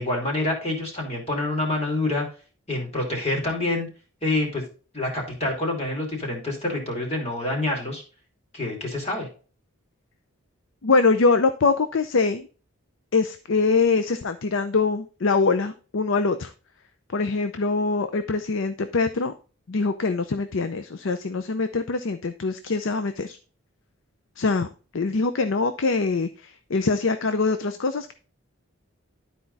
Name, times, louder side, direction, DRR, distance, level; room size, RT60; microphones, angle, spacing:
voice 1, 0.0-2.2 2.7-3.9 4.2-4.6 4.9-8.0 8.5-9.3, left 2 dB, 30° left, 0 dB, 2.9 m, -27 dB
voice 2, 10.8-12.5 13.1-16.5 17.1-19.3 19.7-23.4 24.4-24.7 24.9-28.1, left 4 dB, 65° left, 10 dB, 0.6 m, -23 dB
12.0 x 4.5 x 4.0 m, 0.37 s
head